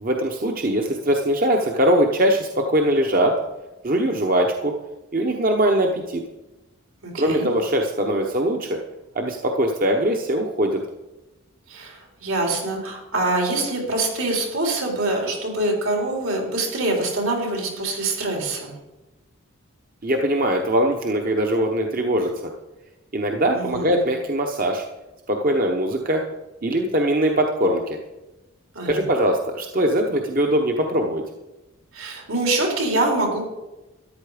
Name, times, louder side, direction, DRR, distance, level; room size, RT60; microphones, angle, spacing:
voice 1, 0.0-3.3 3.8-4.7 5.1-6.2 7.1-8.8 9.1-10.8 20.0-22.5 23.1-24.8 25.3-26.2 26.6-28.0 28.8-31.2, right 1 dB, 40° right, 2 dB, 1.0 m, -21 dB
voice 2, 7.0-7.5 11.7-18.7 23.5-24.0 28.7-29.0 31.9-33.5, right 2 dB, 75° right, 0 dB, 4.1 m, -24 dB
13.5 x 11.0 x 5.0 m, 1.0 s
head